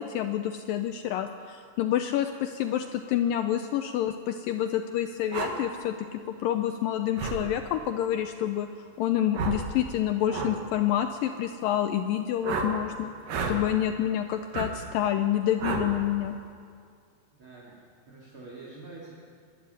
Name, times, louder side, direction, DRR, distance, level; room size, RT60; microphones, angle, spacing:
voice 1, 0.0-8.7 9.0-13.1 13.5-16.4, left 11 dB, 80° left, 7 dB, 2.2 m, -28 dB
sound 1, 5.3-5.5 7.2-7.4 9.3-9.6 10.3-10.5 12.4-12.7 13.3-13.6 14.5-14.7 15.6-15.9, right 4 dB, 65° right, 3.4 m, -30 dB
voice 2, 17.4-17.8 18.1-19.1, right 3 dB, 35° right, -5 dB, 3.3 m, -45 dB
24.0 x 12.0 x 9.7 m, 2.2 s
omnidirectional pair, 4.4 m